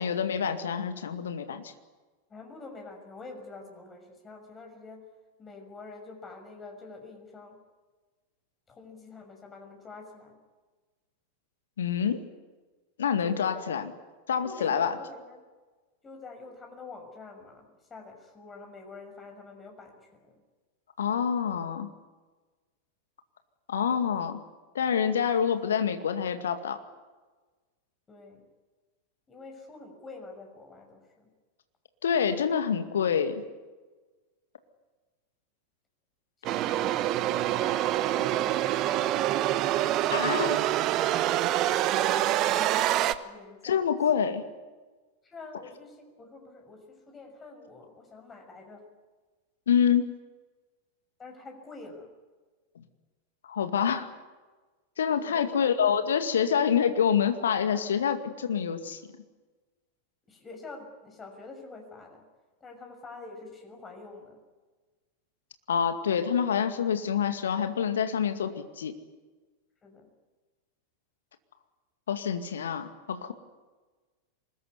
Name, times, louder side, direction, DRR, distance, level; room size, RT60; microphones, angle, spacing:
voice 1, 0.0-1.6 11.8-12.2 13.0-13.9 14.3-14.9 21.0-21.9 23.7-24.4 24.7-26.8 32.0-33.4 40.1-40.6 43.6-44.4 49.7-50.2 53.4-54.1 55.0-59.0 65.7-68.9 72.1-73.3, left 7 dB, 65° left, 8 dB, 2.1 m, -27 dB
voice 2, 2.3-5.0 5.4-7.6 8.7-10.4 13.2-13.8 14.4-15.4 16.0-20.4 28.1-28.4 29.3-31.3 36.5-39.1 43.2-43.8 45.2-48.8 51.2-52.1 55.2-55.5 60.3-62.3 62.6-64.4 69.8-70.1, left 3 dB, 20° left, 3 dB, 6.3 m, -46 dB
sound 1, 36.4-43.1, right 13 dB, 35° right, 1.1 m, -26 dB
24.5 x 21.0 x 9.6 m, 1.3 s
figure-of-eight pair, 90°, 0 cm